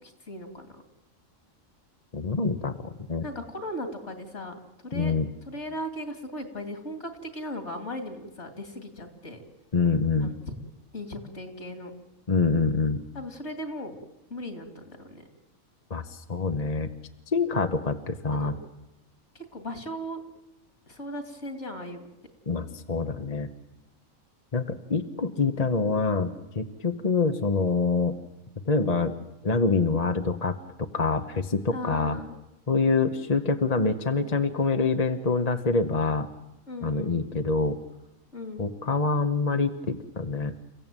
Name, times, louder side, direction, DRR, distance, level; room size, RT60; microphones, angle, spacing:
voice 1, 0.0-0.8 3.2-4.5 4.8-5.1 5.5-9.4 10.2-10.3 10.9-11.9 13.1-13.9 14.3-15.2 18.3-18.5 19.3-20.2 20.9-22.1 31.7-32.4 36.7-37.1 38.3-38.6, left 1 dB, 55° left, 7 dB, 3.1 m, -37 dB
voice 2, 2.1-3.3 4.9-5.3 9.7-10.3 12.3-13.0 15.9-16.9 17.3-18.5 22.5-23.5 24.5-28.2 28.6-29.1 29.4-32.2 32.7-36.3 36.8-37.8 38.6-40.5, left 4 dB, 30° left, 6 dB, 1.0 m, -26 dB
29.5 x 15.5 x 9.1 m, 0.94 s
omnidirectional pair, 1.4 m